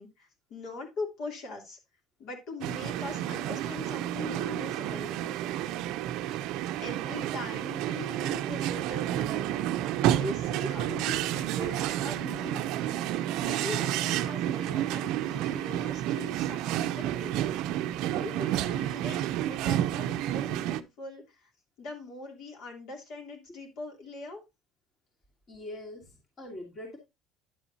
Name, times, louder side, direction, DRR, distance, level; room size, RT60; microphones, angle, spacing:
voice 1, 0.0-1.8 2.2-5.3 6.8-17.4 18.0-21.5 21.8-24.4, left 3 dB, 50° left, 1 dB, 3.0 m, -41 dB
sound 1, 2.6-20.8, right 12 dB, 65° right, 0.5 m, -30 dB
voice 2, 25.5-27.0, left 1 dB, 25° left, 0 dB, 2.7 m, -43 dB
10.5 x 7.3 x 2.8 m, 0.23 s
cardioid pair, 160°, 0 cm